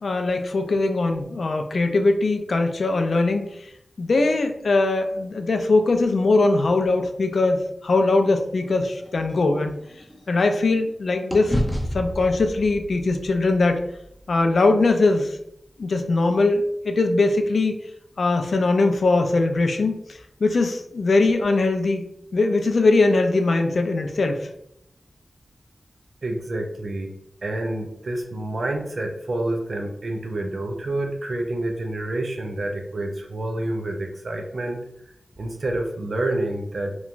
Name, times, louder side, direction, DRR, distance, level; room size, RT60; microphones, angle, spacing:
voice 1, 0.0-3.5 4.0-9.8 10.3-11.6 11.9-13.9 14.3-15.4 15.8-17.8 18.2-19.9 20.4-22.1 22.3-24.5, left 3 dB, 75° left, 5 dB, 0.3 m, -21 dB
sound 1, 8.6-10.9 11.3-15.5, equal, 10° left, 0.5 m, -32 dB
voice 2, 26.2-27.1 27.4-34.8 35.4-37.0, right 1 dB, 70° right, 2 dB, 0.4 m, -28 dB
2.9 x 2.2 x 2.5 m, 0.74 s
wide cardioid pair, 65°, 0 cm